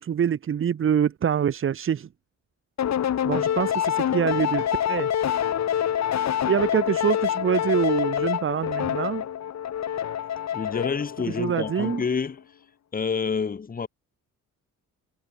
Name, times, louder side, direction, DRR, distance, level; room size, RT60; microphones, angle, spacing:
voice 1, 0.0-2.1 3.2-5.1 6.5-9.2 11.3-12.0, right 8 dB, 40° right, 0.8 m, -25 dB
sound 1, 2.8-12.2, left 10 dB, 55° left, 1.5 m, -26 dB
voice 2, 10.5-12.5 12.9-13.9, left 5 dB, 25° left, 1.1 m, -28 dB
cardioid pair, 115°, 33 cm